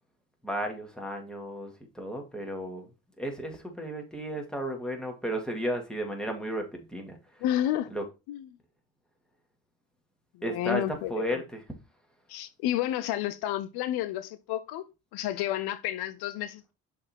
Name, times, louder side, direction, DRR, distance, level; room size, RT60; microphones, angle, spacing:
voice 1, 0.4-2.9 3.2-7.2 7.9-8.0 10.4-10.8 11.1-11.6, right 1 dB, ahead, 2.4 m, -34 dB
voice 2, 7.4-7.9 8.3-8.5 10.3-11.4 12.3-16.7, left 12 dB, 85° left, 0.6 m, -31 dB
6.4 x 4.1 x 4.5 m
supercardioid pair, 60°, 37 cm